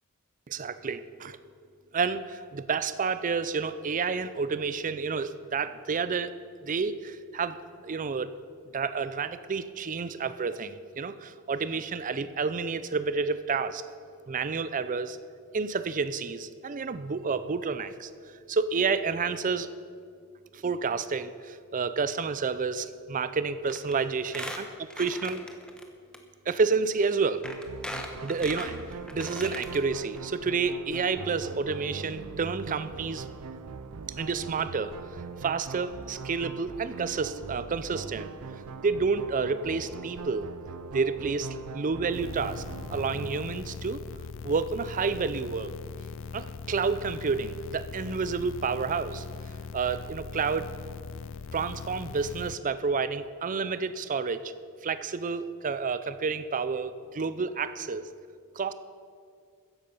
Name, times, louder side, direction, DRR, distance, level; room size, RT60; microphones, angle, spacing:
voice 1, 0.5-1.4 1.9-6.3 6.6-8.3 8.7-13.8 14.3-15.2 15.5-18.1 18.5-19.7 20.5-25.4 26.5-27.4 28.2-28.8 29.1-33.2 34.2-34.9 35.4-38.3 38.8-40.5 40.9-42.6 42.9-44.0 44.4-45.7 46.3-49.2 49.7-50.7 51.5-54.5 54.8-58.1 58.6-58.7, right 5 dB, 35° right, 13 dB, 0.5 m, -30 dB
Squeak, 23.7-23.9 24.2-25.8 26.1-26.2 27.0-27.1 27.4-29.8 30.2-30.3 30.5-30.6, left 1 dB, 5° left, 1.0 m, -39 dB
sound 1, 27.4-43.5, right 4 dB, 85° right, 0.5 m, -41 dB
sound 2, 42.1-52.5, left 5 dB, 60° left, 0.4 m, -40 dB
14.5 x 10.5 x 5.5 m, 2.3 s
head